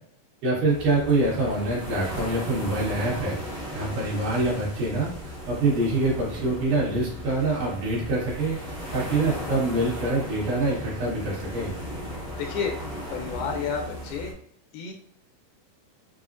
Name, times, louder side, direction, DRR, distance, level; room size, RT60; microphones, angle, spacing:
voice 1, 0.4-3.4 3.7-5.1 5.5-8.6 8.9-11.7, right 2 dB, 70° right, -5 dB, 2.7 m, -25 dB
sound 1, 0.7-14.3, equal, 50° right, 1.0 m, -36 dB
voice 2, 12.4-12.8 13.1-14.3 14.7-14.9, left 6 dB, 85° left, 2 dB, 2.5 m, -30 dB
6.1 x 2.1 x 2.5 m, 0.62 s
omnidirectional pair, 4.2 m